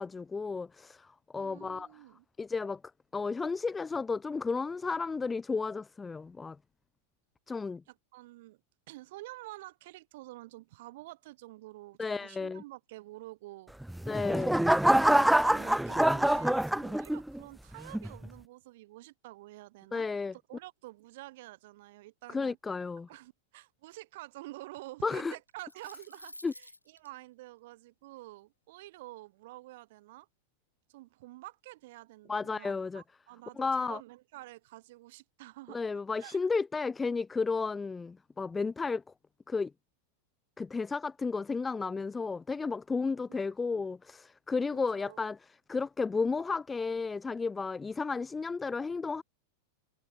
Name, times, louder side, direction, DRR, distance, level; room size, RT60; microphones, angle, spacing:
voice 1, 0.0-1.9 2.4-2.8 3.1-6.6 7.5-7.8 12.0-12.6 14.1-14.6 19.9-20.3 22.3-23.1 25.0-25.3 26.4-26.5 32.3-33.0 33.6-34.0 35.7-39.0 39.5-39.7 40.6-49.2, left 4 dB, 15° left, 0.5 m, -33 dB
voice 2, 1.3-2.3 7.9-8.6 8.9-13.7 15.1-20.1 20.3-22.6 23.1-30.3 30.9-35.8 36.2-36.4 43.3-43.4 43.7-43.8 44.7-45.3, right 18 dB, 50° right, 6.9 m, -49 dB
sound 1, 13.8-17.4 17.9-18.3, right 1 dB, 5° right, 1.2 m, -25 dB
sound 2, 25.5-27.1, left 1 dB, 85° left, 5.9 m, -50 dB
figure-of-eight pair, 90°, 0 cm